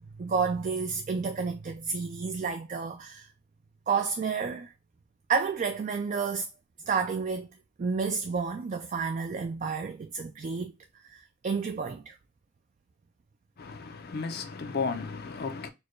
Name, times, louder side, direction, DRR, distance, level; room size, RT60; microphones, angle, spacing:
voice 1, 0.2-3.3 3.9-4.7 5.3-6.5 6.9-7.5 7.8-10.7 11.1-12.2, right 5 dB, 35° right, 0.3 m, -30 dB
voice 2, 13.6-15.7, left 4 dB, 45° left, 0.5 m, -34 dB
4.3 x 2.2 x 3.1 m
head